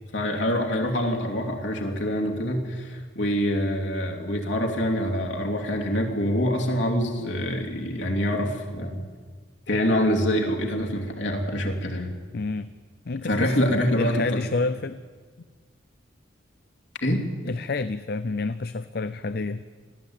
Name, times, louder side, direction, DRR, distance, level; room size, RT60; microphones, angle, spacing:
voice 1, 0.1-9.0 9.7-12.1 13.2-14.4 17.0-17.2, equal, 70° left, 1 dB, 3.0 m, -25 dB
voice 2, 12.3-12.7 13.1-15.0 17.4-19.6, left 3 dB, 55° left, 13 dB, 0.5 m, -29 dB
20.0 x 15.0 x 8.9 m, 1.5 s
head